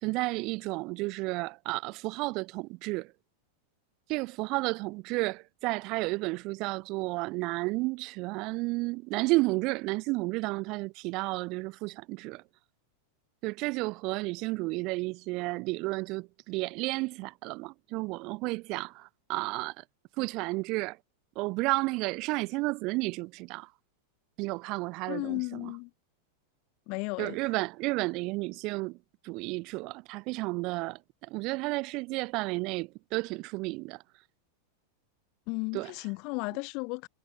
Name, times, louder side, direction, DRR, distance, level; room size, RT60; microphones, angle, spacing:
voice 1, 0.0-3.1 4.1-12.4 13.4-19.8 20.2-21.0 21.3-23.7 24.4-25.7 27.2-29.0 29.2-34.0 35.7-35.9, right 24 dB, 40° right, 1.1 m, -32 dB
voice 2, 25.1-25.9 26.9-27.4 35.5-37.1, left 31 dB, 45° left, 3.9 m, -34 dB
figure-of-eight pair, 90°, 0 cm